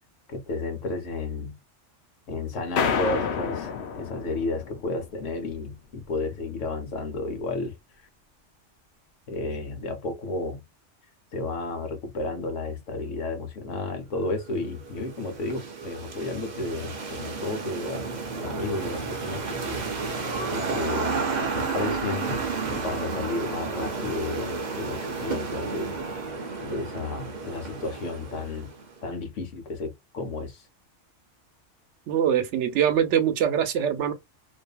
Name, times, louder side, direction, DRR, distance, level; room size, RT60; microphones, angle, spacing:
voice 1, 0.3-1.6 2.3-7.7 9.3-10.6 11.3-18.0 18.3-19.9 20.5-21.2 21.5-22.3 22.7-25.9 26.6-28.7 29.0-30.6, left 3 dB, 85° left, 1.2 m, -32 dB
sound 1, 2.8-5.2, left 6 dB, 65° left, 0.8 m, -29 dB
sound 2, 14.4-29.0, right 4 dB, 45° right, 0.6 m, -32 dB
voice 2, 32.1-34.1, right 9 dB, 70° right, 0.9 m, -23 dB
2.6 x 2.5 x 2.3 m
omnidirectional pair, 1.3 m